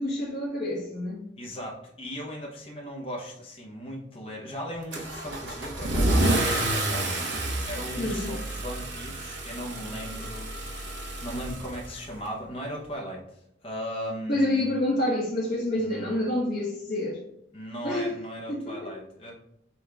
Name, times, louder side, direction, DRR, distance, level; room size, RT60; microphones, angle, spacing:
voice 1, 0.0-1.2 8.0-8.3 14.3-17.2 17.8-18.1 18.5-18.9, left 1 dB, 50° left, -8 dB, 1.1 m, -28 dB
voice 2, 1.4-14.6 15.8-16.3 17.5-19.3, equal, 30° left, -2 dB, 0.7 m, -38 dB
Car / Engine starting / Accelerating revving vroom, 4.9-12.3, right 1 dB, 60° right, 0.7 m, -29 dB
5.5 x 2.3 x 3.2 m, 0.73 s
head